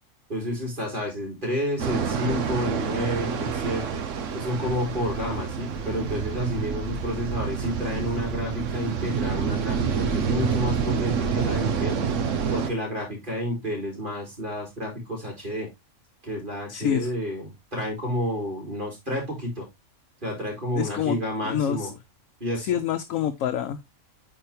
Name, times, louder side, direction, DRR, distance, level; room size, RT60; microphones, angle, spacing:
voice 1, 0.3-4.0 4.3-12.0 12.5-15.7 16.2-19.7 20.2-21.9 22.4-22.8, equal, 35° right, 3.4 m, -30 dB
sound 1, 1.8-12.7, right 6 dB, 65° right, 1.2 m, -28 dB
voice 2, 16.7-17.1 20.7-21.2 21.4-21.9 22.6-23.8, left 9 dB, 70° left, 1.0 m, -26 dB
9.0 x 4.1 x 3.3 m
omnidirectional pair, 1.5 m